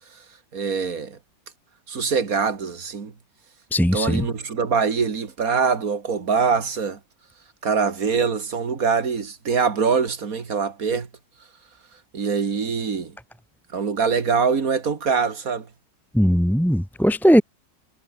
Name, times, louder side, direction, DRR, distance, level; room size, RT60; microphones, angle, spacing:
voice 1, 0.5-1.2 1.9-3.1 3.9-7.0 7.6-11.1 12.1-13.1 13.7-15.7, right 5 dB, 50° right, 2.5 m, -23 dB
voice 2, 3.7-4.3 16.1-17.4, equal, ahead, 2.6 m, -18 dB
omnidirectional pair, 2.0 m